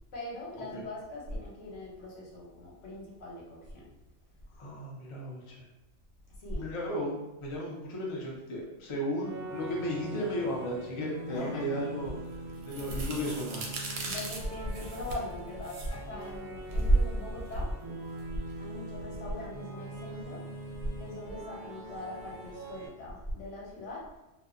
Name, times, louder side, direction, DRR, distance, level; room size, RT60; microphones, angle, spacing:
voice 1, 0.1-3.9 6.3-6.7 11.3-11.8 12.5-12.6 12.9-13.0 14.1-17.7 18.6-20.5 20.9-24.1, left 1 dB, 75° left, -4 dB, 1.1 m, -40 dB
voice 2, 4.6-5.6 6.5-12.1 12.7-13.7, equal, 45° left, -3 dB, 0.4 m, -35 dB
sound 1, 9.2-22.9, right 1 dB, 25° right, 0.5 m, -42 dB
sound 2, 12.1-18.8, right 2 dB, 65° right, 0.8 m, -33 dB
2.7 x 2.1 x 2.4 m, 1.0 s
omnidirectional pair, 1.3 m